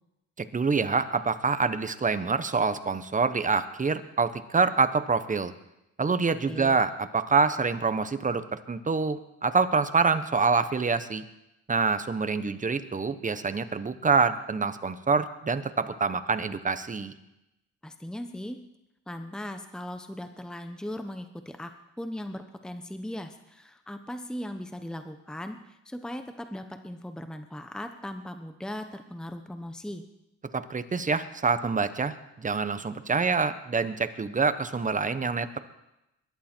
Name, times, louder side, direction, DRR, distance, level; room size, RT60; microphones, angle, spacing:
voice 1, 0.5-5.5 6.0-11.2 11.7-17.1 30.5-35.6, right 4 dB, 25° right, 11 dB, 1.1 m, -26 dB
voice 2, 6.5-6.8 17.8-18.6 19.1-21.7 22.0-30.0, left 1 dB, ahead, 7 dB, 1.0 m, -38 dB
22.5 x 11.5 x 4.5 m, 0.90 s
cardioid pair, 90°, 30 cm